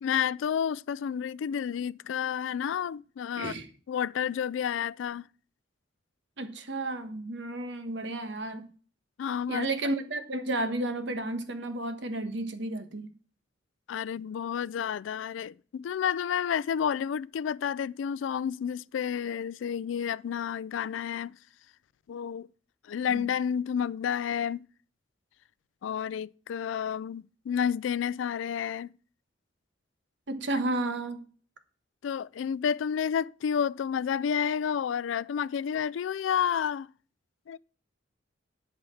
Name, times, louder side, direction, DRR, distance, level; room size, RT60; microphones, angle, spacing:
voice 1, 0.0-3.5 3.9-5.3 9.2-9.7 13.9-21.4 22.1-22.5 22.9-24.7 25.8-28.9 32.0-36.9 37.5-37.6, left 8 dB, 80° left, 0.3 m, -30 dB
voice 2, 3.4-3.7 6.4-8.7 9.5-13.1 23.1-23.2 30.3-31.2, right 2 dB, 65° right, 1.3 m, -32 dB
11.0 x 4.2 x 7.1 m
head